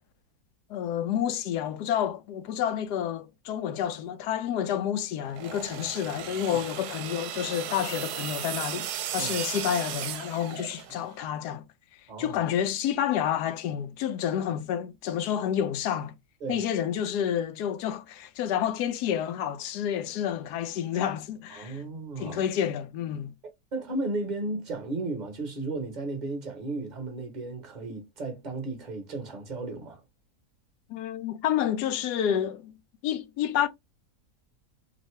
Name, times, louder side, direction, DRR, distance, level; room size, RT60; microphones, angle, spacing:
voice 1, 0.7-11.6 12.2-16.1 16.5-21.8 22.2-23.3 30.9-32.7 33.0-33.7, left 9 dB, 80° left, 1.1 m, -29 dB
sound 1, 5.3-11.1, right 10 dB, 75° right, 1.1 m, -36 dB
voice 2, 21.5-22.4 23.7-30.0, right 2 dB, 35° right, 0.9 m, -34 dB
3.1 x 2.7 x 3.1 m
omnidirectional pair, 1.7 m